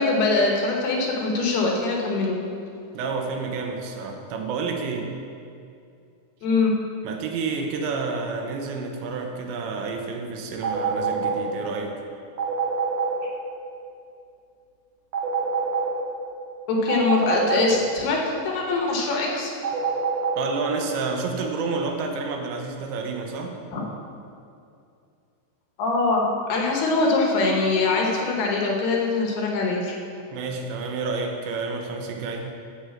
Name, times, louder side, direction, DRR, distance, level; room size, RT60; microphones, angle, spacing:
voice 1, 0.0-2.4 6.4-6.7 16.7-19.5 23.7-23.8 25.8-30.0, left 3 dB, 70° left, 0 dB, 3.0 m, -23 dB
voice 2, 2.9-5.2 7.0-12.0 20.4-23.6 30.3-32.5, right 4 dB, 85° right, 3 dB, 3.2 m, -29 dB
sound 1, 10.6-11.4 12.4-13.1 15.1-15.9 16.9-17.6 19.6-20.4, right 6 dB, 60° right, 1.9 m, -25 dB
9.6 x 6.5 x 7.1 m, 2.5 s
omnidirectional pair, 5.1 m